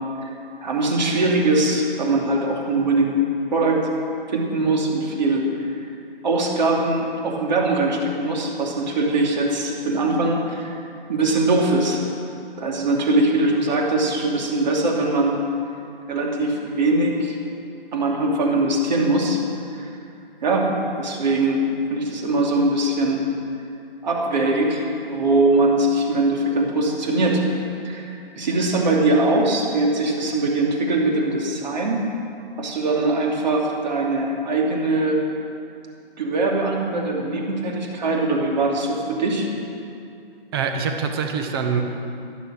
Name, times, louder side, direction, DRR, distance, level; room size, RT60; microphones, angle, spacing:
voice 1, 0.6-3.2 3.5-3.9 4.3-5.8 6.2-10.7 11.1-12.0 12.6-15.4 16.1-17.4 17.9-19.4 19.8-19.9 20.4-20.7 21.0-21.6 21.9-23.2 24.0-27.4 27.8-28.1 28.4-32.0 32.6-35.2 36.2-39.5, right 2 dB, 50° right, 0 dB, 3.0 m, -21 dB
voice 2, 40.5-41.8, right 6 dB, 25° right, 5 dB, 1.1 m, -24 dB
13.0 x 11.5 x 6.4 m, 2.5 s
hypercardioid pair, 155°, 29 cm